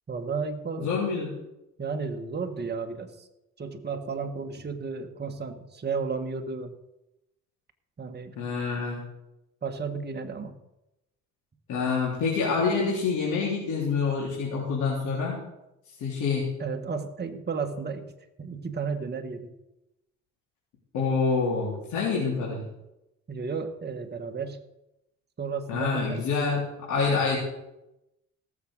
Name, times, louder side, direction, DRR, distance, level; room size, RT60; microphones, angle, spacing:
voice 1, 0.1-0.9 1.8-3.3 3.6-6.7 8.0-8.4 9.6-10.5 16.6-18.1 18.4-19.5 23.3-24.6 25.4-26.3 26.9-27.1, right 5 dB, 35° right, 5 dB, 1.5 m, -33 dB
voice 2, 0.8-1.3 8.4-9.0 11.7-15.4 16.0-16.5 20.9-22.6 25.7-26.6 26.9-27.4, left 5 dB, 85° left, -6 dB, 3.7 m, -26 dB
17.0 x 7.4 x 6.4 m, 0.90 s
cardioid pair, 90°, 30 cm